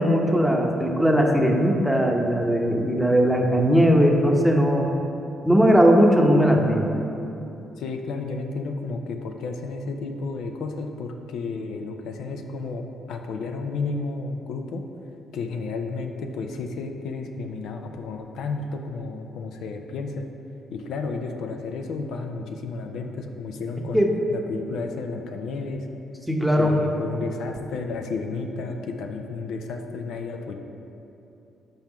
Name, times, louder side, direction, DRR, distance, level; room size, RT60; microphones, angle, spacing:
voice 1, 0.0-4.9 5.4-6.8 23.9-24.1 26.3-26.7, equal, 5° right, 0 dB, 0.8 m, -19 dB
voice 2, 7.8-14.8 15.3-20.3 20.7-25.9 26.6-30.5, left 4 dB, 80° left, 4 dB, 0.5 m, -32 dB
5.5 x 4.4 x 5.9 m, 2.9 s
cardioid pair, 90°, 0 cm